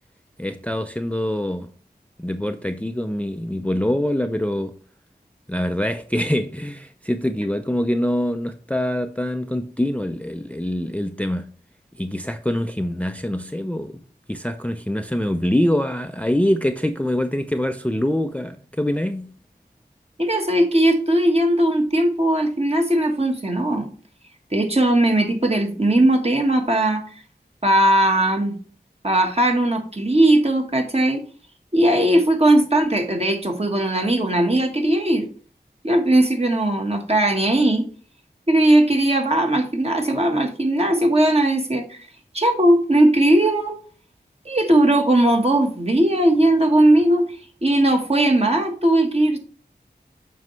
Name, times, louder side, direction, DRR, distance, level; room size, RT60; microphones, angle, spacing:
voice 1, 0.4-1.7 2.2-4.7 5.5-11.5 12.0-14.0 14.3-19.3, left 1 dB, 10° left, 0.5 m, -24 dB
voice 2, 20.2-23.9 24.5-27.0 27.6-28.5 29.0-31.2 31.7-35.3 35.8-37.8 38.5-42.0 42.3-43.8 44.4-47.3 47.6-49.4, right 1 dB, 35° right, 1.4 m, -18 dB
7.4 x 5.4 x 3.1 m
wide cardioid pair, 40°, 18 cm